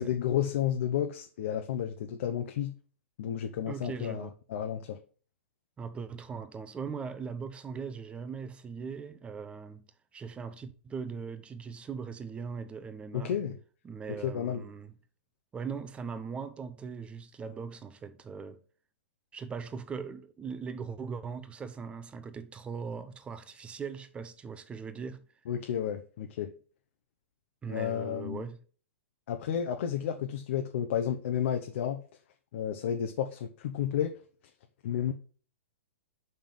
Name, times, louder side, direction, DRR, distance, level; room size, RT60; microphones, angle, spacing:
voice 1, 0.0-2.7 3.2-5.0 13.1-13.6 14.1-14.7 25.5-26.5 27.7-28.4 29.3-32.0 32.5-34.1 34.8-35.1, left 9 dB, 60° left, 0.9 m, -32 dB
voice 2, 3.7-4.3 5.8-9.8 10.1-13.4 13.8-14.9 15.5-18.6 19.3-25.3 27.6-28.6, right 5 dB, 15° right, 0.7 m, -40 dB
5.6 x 5.5 x 5.3 m
hypercardioid pair, 130°, 8 cm